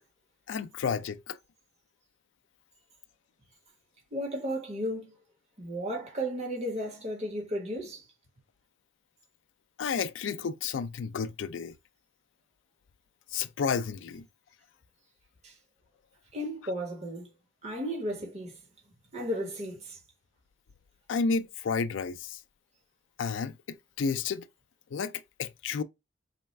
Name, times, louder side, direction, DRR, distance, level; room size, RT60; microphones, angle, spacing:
voice 1, 0.5-1.4 9.8-11.7 13.3-14.3 21.1-22.4 23.2-24.5 24.9-25.1 25.4-25.8, left 5 dB, 90° left, 0.4 m, -31 dB
voice 2, 4.1-5.1 5.6-8.0 15.4-15.5 16.3-17.3 17.6-18.5 19.1-20.0, equal, 35° right, 1.2 m, -34 dB
4.2 x 2.4 x 3.2 m
head